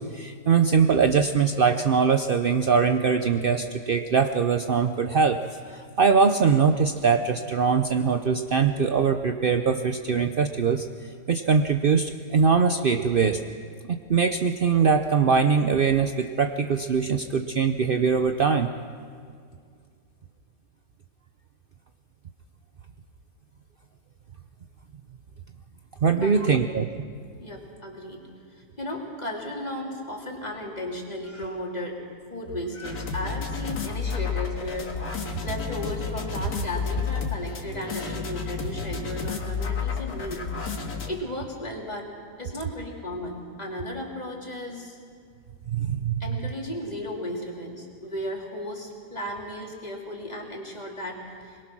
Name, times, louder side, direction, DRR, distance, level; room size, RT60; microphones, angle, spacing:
voice 1, 0.0-5.4 5.7-10.9 11.3-13.4 14.1-18.7 26.0-26.9 45.7-46.2, right 6 dB, 70° right, 6 dB, 0.5 m, -22 dB
voice 2, 26.2-26.7 27.4-32.0 32.3-42.1 42.4-45.0 46.2-51.6, left 1 dB, 25° left, -2 dB, 3.1 m, -35 dB
sound 1, 32.8-41.1, left 5 dB, 60° left, 2.2 m, -31 dB
22.5 x 22.5 x 6.1 m, 2.1 s
omnidirectional pair, 1.8 m